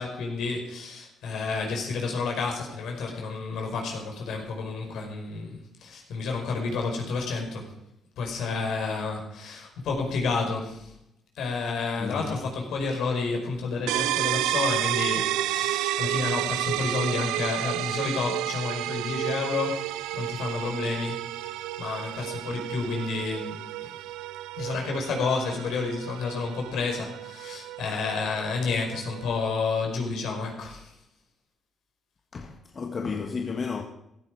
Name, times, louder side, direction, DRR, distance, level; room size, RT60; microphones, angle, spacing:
voice 1, 0.0-7.7 8.2-10.9 11.3-24.0 24.6-30.9, left 4 dB, 75° left, 5.0 m, -30 dB
voice 2, 12.0-12.4 32.3-33.8, left 5 dB, 45° left, 1.7 m, -32 dB
sound 1, 13.9-29.4, right 14 dB, 85° right, 0.5 m, -31 dB
15.5 x 14.0 x 4.9 m
supercardioid pair, 60°, 0 cm